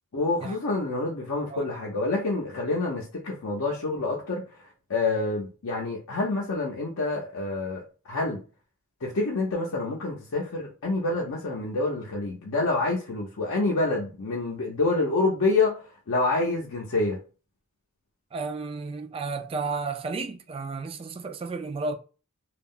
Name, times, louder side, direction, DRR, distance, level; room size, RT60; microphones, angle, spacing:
voice 1, 0.1-4.4 4.9-8.4 9.0-15.8 16.1-17.2, left 3 dB, 70° left, 0.6 m, -27 dB
voice 2, 18.3-21.9, right 4 dB, 25° right, 0.3 m, -32 dB
2.3 x 2.0 x 3.6 m
head